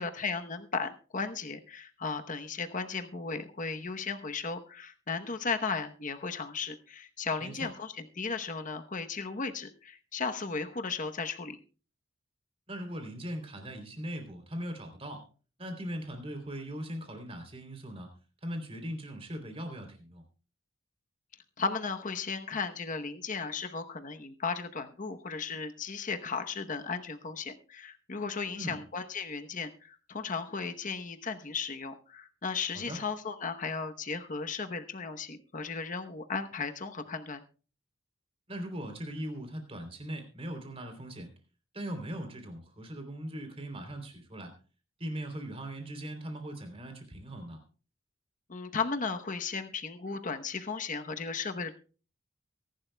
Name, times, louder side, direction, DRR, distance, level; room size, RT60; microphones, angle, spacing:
voice 1, 0.0-11.6 21.6-37.4 48.5-51.7, left 4 dB, 40° left, 7 dB, 1.0 m, -35 dB
voice 2, 12.7-15.2 15.6-18.1 18.4-20.2 28.5-28.8 32.7-33.0 38.5-41.3 41.7-44.5 45.0-47.6, right 1 dB, 30° right, 6 dB, 3.3 m, -40 dB
23.5 x 11.5 x 2.3 m, 0.37 s
head